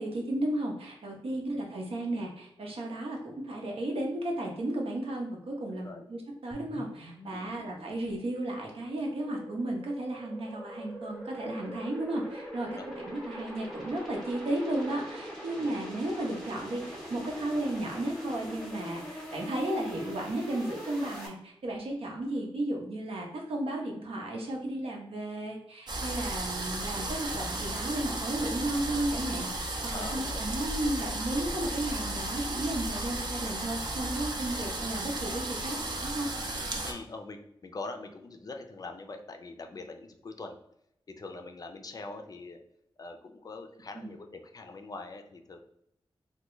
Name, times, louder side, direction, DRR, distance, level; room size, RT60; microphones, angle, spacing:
voice 1, 0.0-36.3 43.9-44.1, right 1 dB, 80° right, 0 dB, 0.8 m, -34 dB
voice 2, 5.7-6.0 7.3-7.5 12.6-12.9 15.5-15.7 29.9-30.4 36.8-40.6 41.1-42.6 43.0-45.6, left 3 dB, 40° left, 5 dB, 0.3 m, -43 dB
sound 1, 6.5-21.3, equal, 5° left, 0.8 m, -43 dB
sound 2, 25.9-36.9, right 2 dB, 50° right, 0.5 m, -34 dB
3.3 x 2.2 x 3.0 m, 0.77 s
wide cardioid pair, 150°, 10 cm